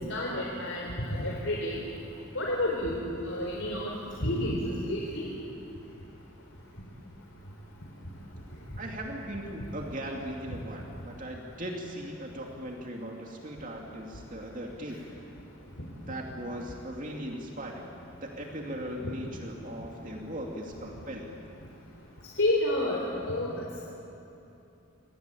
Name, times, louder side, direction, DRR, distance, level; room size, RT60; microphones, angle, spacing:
voice 1, 0.1-1.8 2.3-3.9 4.2-5.2 10.5-10.6 22.4-23.0 23.2-23.8, left 1 dB, 75° left, -2 dB, 4.0 m, -30 dB
voice 2, 8.8-15.0 16.1-17.9 18.2-21.3, equal, 40° right, 0 dB, 2.7 m, -38 dB
27.5 x 22.5 x 9.2 m, 2.9 s
head